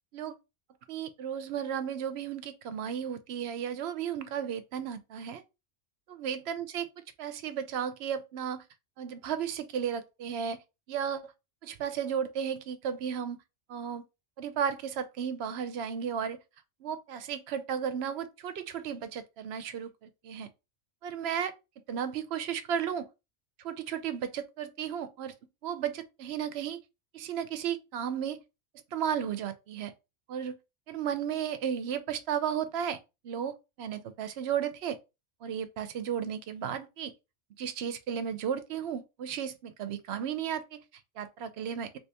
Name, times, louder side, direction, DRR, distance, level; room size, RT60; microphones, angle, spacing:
voice 1, 0.9-5.4 6.1-6.9 7.2-8.6 9.0-10.6 10.9-11.3 11.6-13.4 13.7-14.0 14.4-16.4 16.8-19.9 20.2-20.5 21.0-21.5 21.9-23.1 23.6-25.3 25.6-26.8 27.1-28.4 28.9-29.9 30.3-30.5 30.9-33.0 33.2-35.0 35.4-37.1 37.6-40.8 41.2-41.9, right 8 dB, 70° right, 0.8 m, -34 dB
3.3 x 3.1 x 2.8 m
omnidirectional pair, 1.2 m